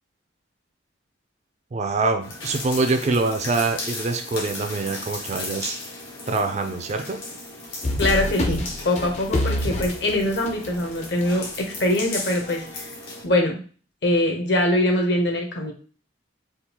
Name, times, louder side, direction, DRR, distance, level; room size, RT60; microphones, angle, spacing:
voice 1, 1.7-5.8 6.3-7.2, right 3 dB, 35° right, 6 dB, 0.3 m, -24 dB
sound 1, 2.2-13.2, left 2 dB, 80° left, 1.2 m, -36 dB
sound 2, 7.8-11.3, left 1 dB, 35° left, 0.5 m, -26 dB
voice 2, 8.0-12.8 13.2-13.6 14.0-15.7, left 1 dB, 60° left, 2 dB, 0.8 m, -23 dB
3.7 x 2.4 x 2.9 m, 0.40 s
head